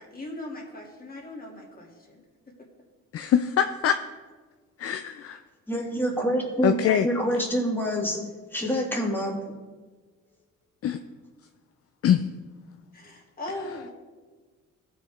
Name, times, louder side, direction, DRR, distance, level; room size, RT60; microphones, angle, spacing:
voice 1, 0.0-2.2 12.9-13.9, left 1 dB, 30° left, -2 dB, 2.5 m, -39 dB
voice 2, 3.1-4.0 4.8-5.4 6.6-7.1 10.8-11.0 12.0-12.3, left 9 dB, 50° left, 8 dB, 0.5 m, -23 dB
voice 3, 5.7-6.8 7.0-8.2 8.5-9.4, equal, 5° left, -2 dB, 2.4 m, -26 dB
15.5 x 5.4 x 3.6 m, 1.4 s
cardioid pair, 90°, 30 cm